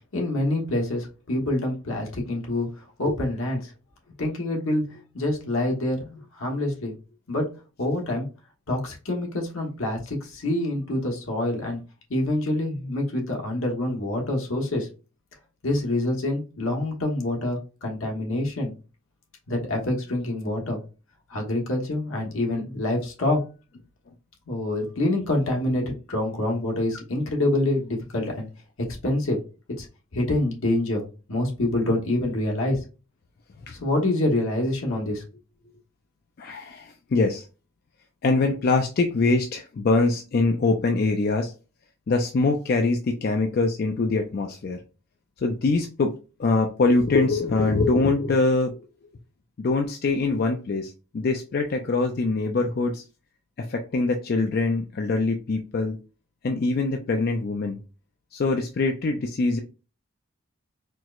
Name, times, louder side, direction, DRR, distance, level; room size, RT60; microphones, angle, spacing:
voice 1, 0.1-2.7 3.0-3.7 4.2-6.9 7.3-7.5 7.8-8.3 8.7-11.8 12.1-14.9 15.6-18.7 19.5-20.8 21.3-23.4 24.5-28.5 28.8-29.4 29.8-29.9 30.1-32.8 33.7-35.2, left 1 dB, 75° left, 1 dB, 1.0 m, -26 dB
voice 2, 36.4-37.4 38.2-41.5 42.1-44.8 45.4-46.1 46.4-48.9 49.6-53.0 53.6-56.0 56.4-57.8 58.3-59.6, left 3 dB, 45° left, 3 dB, 0.3 m, -23 dB
4.4 x 2.0 x 2.4 m, 0.32 s
head